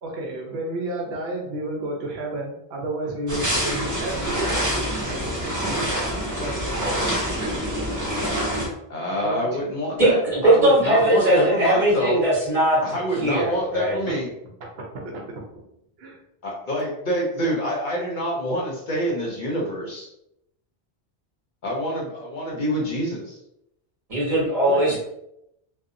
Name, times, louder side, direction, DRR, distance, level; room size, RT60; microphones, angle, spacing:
voice 1, 0.0-4.6 5.1-6.1 6.4-7.5 9.1-9.7 14.9-15.0 16.0-16.2 24.7-25.0, right 1 dB, 75° right, -1 dB, 0.8 m, -32 dB
sound 1, 3.3-8.7, equal, 20° right, 0.8 m, -26 dB
voice 2, 8.9-12.2 12.8-14.3 16.4-20.1 21.6-23.4, equal, 55° left, -2 dB, 0.7 m, -27 dB
voice 3, 10.0-12.8 13.2-14.0 24.1-25.0, right 1 dB, 35° right, -8 dB, 1.4 m, -19 dB
2.7 x 2.1 x 2.5 m, 0.81 s
omnidirectional pair, 1.1 m